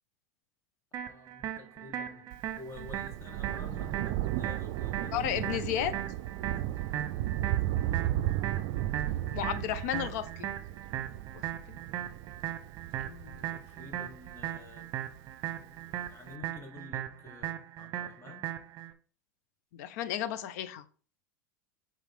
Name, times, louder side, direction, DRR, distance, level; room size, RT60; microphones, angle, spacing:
voice 1, 0.9-6.0 7.8-8.3 13.5-15.0 15.5-18.5, left 2 dB, 25° left, 2.0 m, -50 dB
sound 1, 0.9-18.9, right 11 dB, 45° right, 0.9 m, -38 dB
Thunder, 2.3-15.2 16.1-16.2, right 14 dB, 60° right, 0.4 m, -35 dB
voice 2, 5.1-5.9 9.3-10.5 11.3-11.8 13.0-13.4 19.7-20.8, left 11 dB, 65° left, 0.7 m, -34 dB
7.4 x 3.9 x 3.6 m
hypercardioid pair, 90°, 9 cm